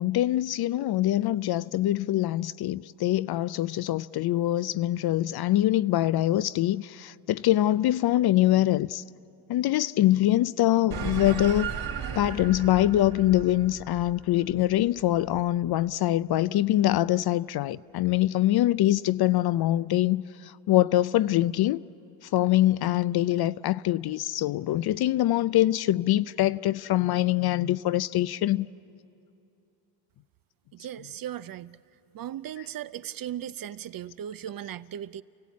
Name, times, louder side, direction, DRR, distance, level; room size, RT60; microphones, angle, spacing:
voice 1, 0.0-9.0 9.5-11.7 12.2-20.2 20.7-21.8 22.3-28.7, left 14 dB, 50° left, 0.5 m, -24 dB
sound 1, 10.9-15.7, right 7 dB, 65° right, 3.2 m, -36 dB
voice 2, 30.7-31.8 32.1-35.2, right 11 dB, 45° right, 0.5 m, -37 dB
29.0 x 16.0 x 8.4 m
cardioid pair, 85°, 50 cm